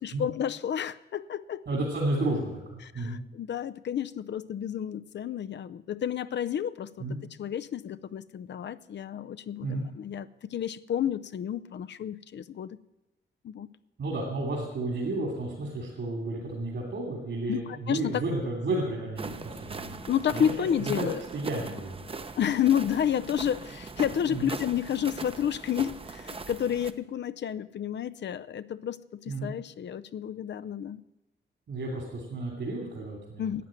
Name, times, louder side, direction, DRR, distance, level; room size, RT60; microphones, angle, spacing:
voice 1, 0.0-1.6 2.8-7.0 7.4-12.8 13.4-13.7 17.5-18.2 20.1-21.2 22.4-31.0 33.4-33.6, left 9 dB, 65° left, 13 dB, 0.6 m, -30 dB
voice 2, 1.7-3.2 7.0-7.2 9.6-9.9 14.0-20.0 20.3-20.5 20.8-21.1 21.3-22.1 24.3-24.5 29.3-29.5 31.7-33.5, right 2 dB, 65° right, -2 dB, 3.0 m, -32 dB
sound 1, 19.2-26.9, right 4 dB, 30° right, 0.8 m, -40 dB
12.0 x 9.5 x 9.0 m, 0.95 s
wide cardioid pair, 125°, 20 cm